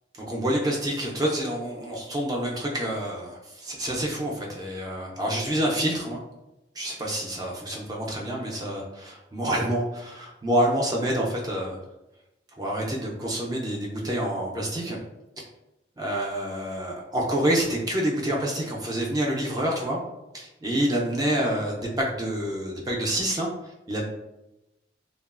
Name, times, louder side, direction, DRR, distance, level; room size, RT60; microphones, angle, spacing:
voice 1, 0.2-6.2 6.7-11.8 12.6-15.0 16.0-20.0 20.3-24.0, right 1 dB, 20° right, -2 dB, 0.4 m, -27 dB
2.9 x 2.3 x 2.3 m, 0.93 s
head